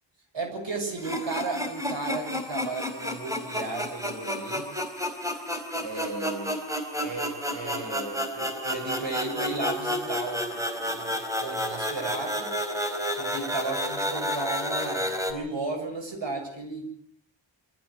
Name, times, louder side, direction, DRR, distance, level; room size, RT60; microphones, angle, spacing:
voice 1, 0.3-4.7 5.7-6.5 7.0-12.6 13.2-16.9, right 3 dB, 65° right, 3 dB, 6.9 m, -34 dB
sound 1, 1.0-15.3, equal, 5° right, 4.3 m, -31 dB
25.5 x 14.5 x 7.8 m, 0.66 s
wide cardioid pair, 70°, 47 cm